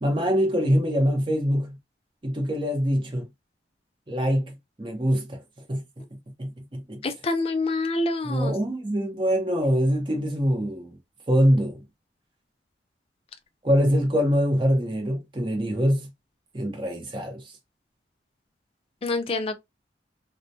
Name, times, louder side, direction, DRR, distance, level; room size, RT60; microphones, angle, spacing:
voice 1, 0.0-1.8 2.2-3.3 4.1-5.4 5.7-6.0 6.4-7.0 8.2-11.0 11.3-11.8 13.6-16.1 16.5-17.4, equal, 30° right, 0.6 m, -24 dB
voice 2, 7.0-8.5 19.0-19.6, left 2 dB, 35° left, 0.4 m, -26 dB
2.2 x 2.1 x 2.6 m
head